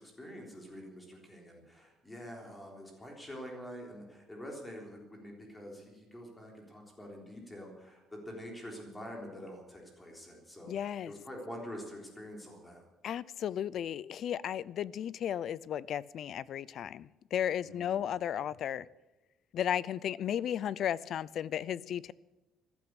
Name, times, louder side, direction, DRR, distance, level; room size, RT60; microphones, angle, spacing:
voice 1, 0.0-12.9 17.6-18.1, equal, 10° left, 1 dB, 3.6 m, -46 dB
voice 2, 10.7-11.1 13.0-18.9 19.5-22.1, left 10 dB, 45° left, 21 dB, 0.4 m, -34 dB
14.5 x 12.0 x 8.2 m, 1.0 s
cardioid pair, 170°, 0 cm